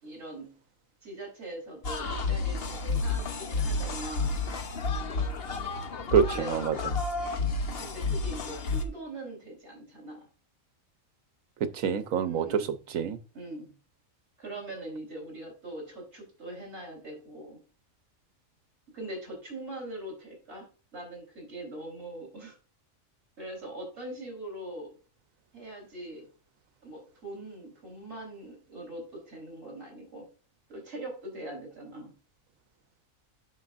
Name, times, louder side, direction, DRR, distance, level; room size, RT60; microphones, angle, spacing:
voice 1, 0.0-0.5 1.0-4.4 6.2-6.6 7.8-10.3 12.2-12.7 13.3-13.7 14.4-17.6 18.9-20.7 20.9-22.6 23.4-24.9 25.5-26.3 26.8-30.3 30.7-32.1, right 1 dB, 55° right, 4.1 m, -42 dB
sound 1, 1.8-8.8, left 3 dB, 50° left, 1.1 m, -31 dB
voice 2, 6.1-6.8 11.6-13.2, right 7 dB, 85° right, 1.2 m, -26 dB
9.6 x 6.6 x 2.5 m
omnidirectional pair, 1.4 m